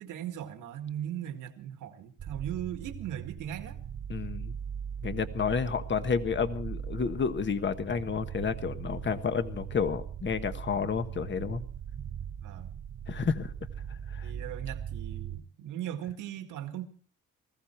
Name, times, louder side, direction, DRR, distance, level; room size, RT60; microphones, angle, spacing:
voice 1, 0.0-3.8 12.4-12.7 14.2-16.9, right 10 dB, 85° right, 7 dB, 2.1 m, -38 dB
sound 1, 2.2-15.4, right 8 dB, 40° right, 1.0 m, -40 dB
voice 2, 4.1-4.6 5.0-11.6 13.1-13.5 13.9-14.3, left 6 dB, 40° left, 10 dB, 1.4 m, -30 dB
20.0 x 15.0 x 4.5 m, 0.43 s
cardioid pair, 90°, 30 cm